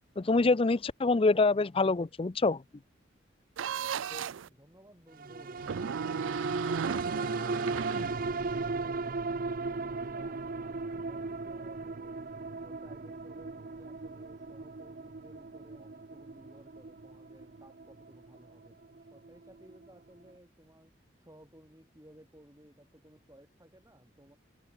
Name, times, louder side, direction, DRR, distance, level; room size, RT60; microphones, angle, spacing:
voice 1, 0.2-2.6 4.1-4.3, left 3 dB, 30° left, 0.5 m, -26 dB
sound 1, 3.6-4.5 5.6-8.7, right 7 dB, 90° right, 0.4 m, -36 dB
voice 2, 4.4-9.6 9.9-20.9 21.2-24.4, right 1 dB, 15° right, 5.0 m, -58 dB
sound 2, 5.2-19.9 20.3-20.4, right 3 dB, 50° right, 0.7 m, -37 dB
head